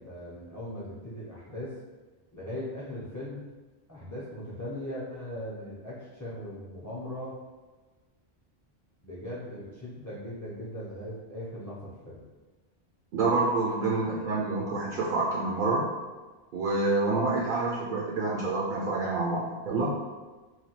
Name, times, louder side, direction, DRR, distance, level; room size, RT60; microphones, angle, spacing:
voice 1, 0.0-1.7 2.3-3.4 3.9-7.4 9.0-12.2, left 1 dB, 25° left, -6 dB, 0.4 m, -39 dB
voice 2, 13.1-15.8 16.5-19.9, right 3 dB, 60° right, -4 dB, 0.6 m, -27 dB
3.2 x 2.2 x 2.8 m, 1.3 s
omnidirectional pair, 1.1 m